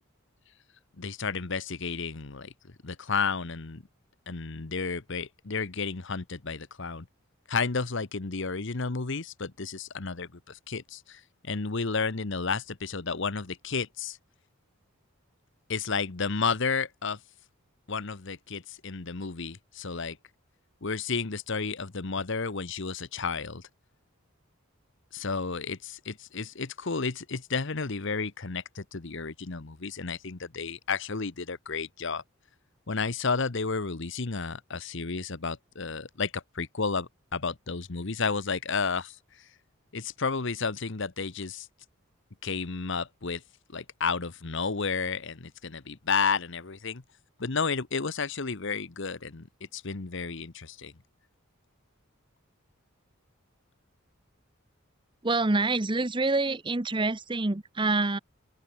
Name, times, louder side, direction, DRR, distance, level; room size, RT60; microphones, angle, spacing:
voice 1, 1.0-3.8 4.3-7.1 7.5-14.2 15.7-17.2 17.9-20.2 20.8-23.7 25.1-32.2 32.9-39.5 39.9-41.7 42.4-43.4 43.7-47.0 47.4-49.5 49.7-50.9, left 5 dB, 60° left, 1.0 m, -32 dB
voice 2, 55.2-58.2, right 3 dB, 20° right, 0.8 m, -26 dB
open air
head